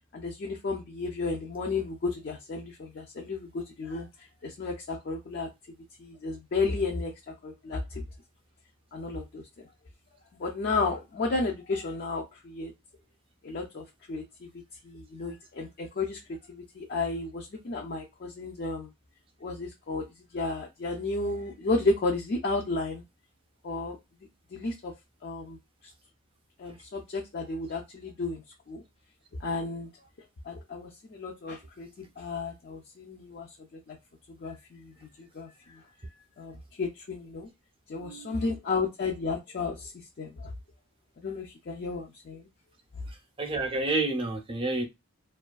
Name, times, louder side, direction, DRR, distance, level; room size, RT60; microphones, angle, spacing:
voice 1, 0.1-5.5 6.0-8.0 8.9-9.7 10.4-12.7 13.4-18.9 19.4-20.0 20.3-23.0 23.6-24.0 24.5-24.9 25.2-25.9 26.6-28.8 29.4-29.9 30.4-34.0 34.3-35.8 36.4-37.5 37.9-40.5 41.2-42.5, left 3 dB, 45° left, 0.4 m, -33 dB
voice 2, 38.0-38.4 43.1-44.8, right 2 dB, 25° right, 0.5 m, -30 dB
2.6 x 2.3 x 2.2 m
head